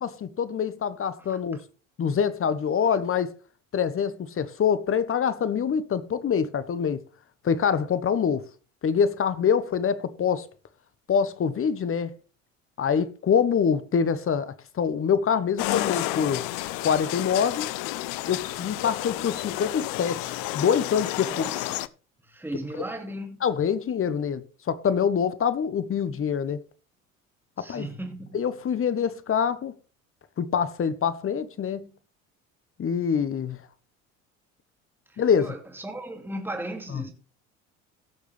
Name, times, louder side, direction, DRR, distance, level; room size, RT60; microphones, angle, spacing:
voice 1, 0.0-1.6 2.0-3.3 3.7-7.0 7.4-8.4 8.8-10.5 11.1-12.1 12.8-16.4 16.8-17.7 18.3-21.5 23.4-26.6 27.6-27.9 28.3-29.7 30.4-31.9 32.8-33.6 35.2-35.5 36.9-37.0, left 7 dB, 35° left, 1.3 m, -25 dB
sound 1, 15.6-21.9, left 17 dB, 55° left, 0.7 m, -31 dB
voice 2, 21.2-21.7 22.2-23.5 27.6-28.4 35.1-37.1, right 1 dB, 5° right, 2.6 m, -36 dB
17.5 x 6.6 x 3.4 m
hypercardioid pair, 65°, 39 cm